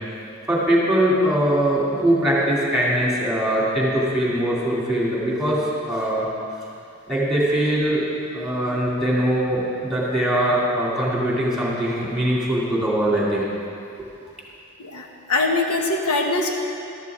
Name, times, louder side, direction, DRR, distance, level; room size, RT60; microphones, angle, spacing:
voice 1, 0.2-5.6 5.9-6.3 7.1-8.0 8.3-13.5, right 1 dB, ahead, -6 dB, 2.7 m, -21 dB
voice 2, 14.8-16.5, left 2 dB, 85° left, 1 dB, 1.2 m, -22 dB
13.5 x 12.5 x 3.7 m, 2.6 s
head